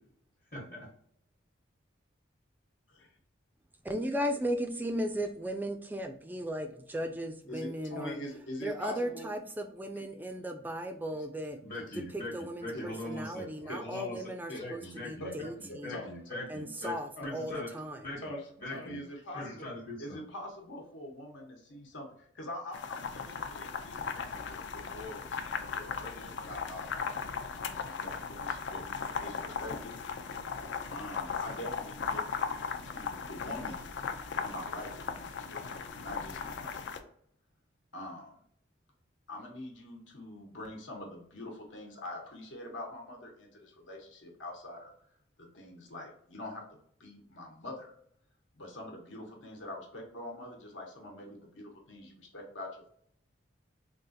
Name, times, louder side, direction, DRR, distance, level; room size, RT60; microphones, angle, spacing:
voice 1, 0.5-0.9 11.6-14.3 14.6-15.5 15.8-16.9 17.2-17.7 18.0-18.2 18.6-19.0 19.3-20.2, left 1 dB, 45° left, -3 dB, 1.0 m, -41 dB
voice 2, 3.9-8.1 8.6-11.6 12.1-15.9 16.5-18.1, equal, 10° right, 6 dB, 0.3 m, -36 dB
voice 3, 7.5-9.3 11.1-11.2 11.9-12.0 12.7-12.9 13.7-14.0 14.5-14.9 15.2-16.1 17.2-17.3 18.2-19.7 20.0-27.1 27.6-30.0 30.9-32.4 32.8-33.8 34.4-36.9 37.9-38.3 39.3-44.9 45.4-47.9 48.5-52.9, left 1 dB, 80° left, 0 dB, 1.1 m, -44 dB
sound 1, 22.7-37.0, left 5 dB, 65° left, 0.4 m, -37 dB
3.8 x 2.4 x 2.6 m, 0.65 s
head